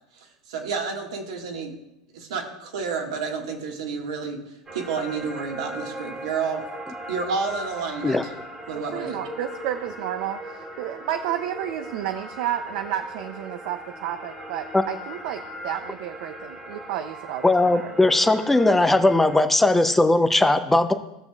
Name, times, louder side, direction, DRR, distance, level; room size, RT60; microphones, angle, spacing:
voice 1, 0.2-1.7 2.1-4.4 4.7-6.6 7.1-8.3 8.7-9.2, right 5 dB, 80° right, 1 dB, 1.8 m, -30 dB
sound 1, 4.7-19.4, equal, 15° right, 1.6 m, -39 dB
voice 2, 8.7-17.9, right 11 dB, 65° right, 8 dB, 0.6 m, -31 dB
voice 3, 17.4-20.9, left 2 dB, 5° left, 8 dB, 0.6 m, -19 dB
16.5 x 6.5 x 2.4 m, 0.89 s
hypercardioid pair, 110°, 3 cm